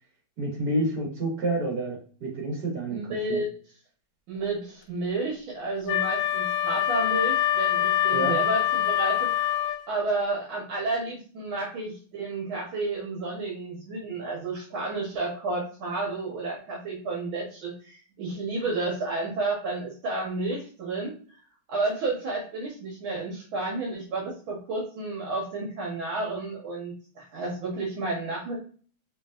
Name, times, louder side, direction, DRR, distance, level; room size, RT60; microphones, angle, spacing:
voice 1, 0.4-3.4 8.1-8.4, right 1 dB, 50° right, -2 dB, 2.2 m, -29 dB
voice 2, 2.9-3.5 4.3-9.6 9.9-21.4 21.7-28.6, right 2 dB, 70° right, -3 dB, 1.9 m, -31 dB
Wind instrument woodwind instrument, 5.9-9.9, left 12 dB, 70° left, 1.1 m, -25 dB
5.4 x 3.5 x 2.5 m, 0.43 s
omnidirectional pair, 2.3 m